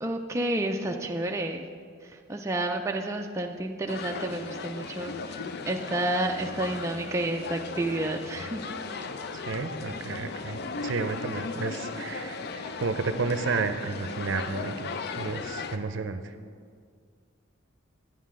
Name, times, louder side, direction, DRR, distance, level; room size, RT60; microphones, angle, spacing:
voice 1, 0.0-1.7 2.0-8.7, right 1 dB, 15° right, 2 dB, 0.3 m, -30 dB
sound 1, 3.9-15.8, left 4 dB, 50° left, 0.4 m, -37 dB
voice 2, 9.3-14.9 15.2-16.2, right 4 dB, 65° right, 9 dB, 0.5 m, -32 dB
9.3 x 9.2 x 3.7 m, 2.1 s
head